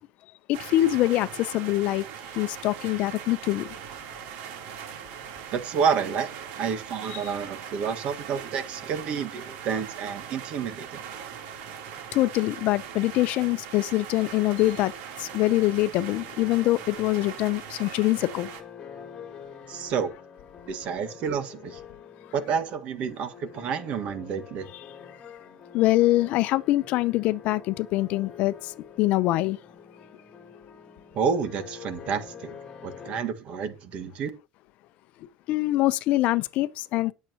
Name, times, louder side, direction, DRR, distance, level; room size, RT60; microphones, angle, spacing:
voice 1, 0.5-2.0 2.4-3.7 7.1-7.2 12.1-14.9 15.2-18.5 25.7-28.5 29.0-29.6 35.5-37.1, left 17 dB, 55° left, 0.6 m, -24 dB
sound 1, 0.5-18.6, right 8 dB, 70° right, 3.3 m, -40 dB
voice 2, 5.5-11.0 19.7-20.1 20.7-21.8 22.3-24.7 31.1-32.5 32.8-34.3, right 6 dB, 45° right, 1.7 m, -29 dB
sound 2, 16.0-33.2, left 7 dB, 30° left, 3.0 m, -46 dB
20.0 x 7.4 x 2.9 m
cardioid pair, 160°, 3 cm